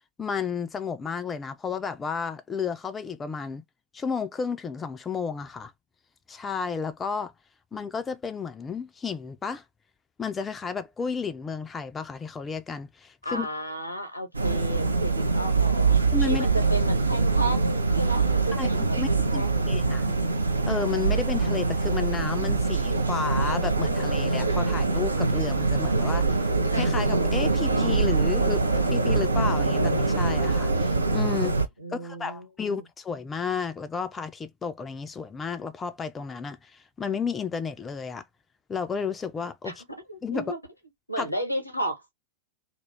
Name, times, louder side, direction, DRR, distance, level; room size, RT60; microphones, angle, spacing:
voice 1, 0.2-3.6 3.9-5.7 6.3-7.3 7.7-9.6 10.2-13.5 16.1-16.5 18.6-20.0 20.7-26.4 26.7-31.6 31.9-38.2 38.7-39.7 40.2-40.4 41.2-41.3, left 5 dB, 20° left, 0.3 m, -32 dB
voice 2, 13.2-19.9 31.8-32.9 39.6-39.8 40.1-40.6 41.1-42.1, right 1 dB, 90° left, 0.8 m, -33 dB
sound 1, 14.3-31.7, right 3 dB, 80° right, 0.5 m, -24 dB
2.3 x 2.0 x 3.1 m
figure-of-eight pair, 90°, 0 cm